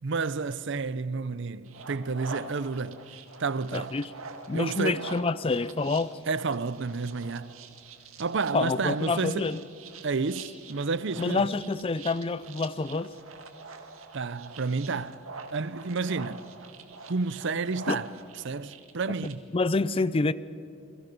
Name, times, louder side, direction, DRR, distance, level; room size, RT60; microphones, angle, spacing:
voice 1, 0.0-3.1 3.4-4.0 4.5-5.1 6.3-7.6 8.2-9.5 10.0-11.5 14.1-16.5 17.1-19.5, right 4 dB, 60° right, 0.6 m, -31 dB
sound 1, 1.6-19.3, right 4 dB, 80° right, 2.0 m, -45 dB
voice 2, 3.7-4.1 4.5-6.1 8.5-9.6 11.2-13.1 17.9-18.0 19.5-20.3, left 3 dB, 25° left, 0.4 m, -27 dB
28.5 x 23.0 x 5.4 m
head